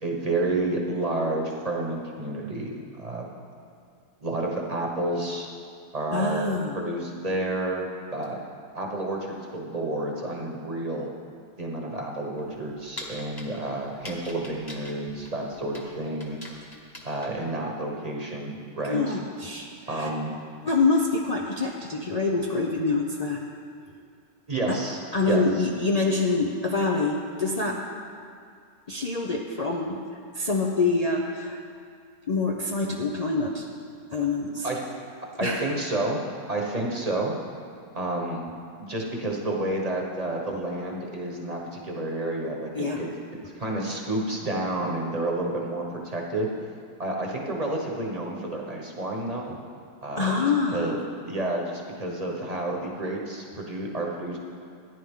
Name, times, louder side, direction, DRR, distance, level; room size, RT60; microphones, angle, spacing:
voice 1, 0.0-3.3 4.2-5.5 5.9-6.5 6.7-7.8 8.1-8.4 8.7-11.1 11.6-16.4 17.0-19.2 19.9-20.3 24.5-25.7 34.6-34.8 35.4-36.2 36.5-37.4 37.9-38.5 38.8-46.5 47.0-49.6 50.0-51.0 51.2-54.4, right 2 dB, 25° right, -1 dB, 1.1 m, -30 dB
voice 2, 6.1-6.8 18.8-20.1 20.6-23.4 24.7-24.8 25.1-27.8 28.9-30.0 30.3-31.6 32.3-33.7 34.1-34.7 35.4-35.6 42.7-43.1 50.2-50.9, left 3 dB, 70° left, -1 dB, 0.3 m, -26 dB
sound 1, 12.3-17.5, left 1 dB, 15° left, 1.0 m, -44 dB
14.0 x 10.0 x 3.7 m, 2.3 s
omnidirectional pair, 1.7 m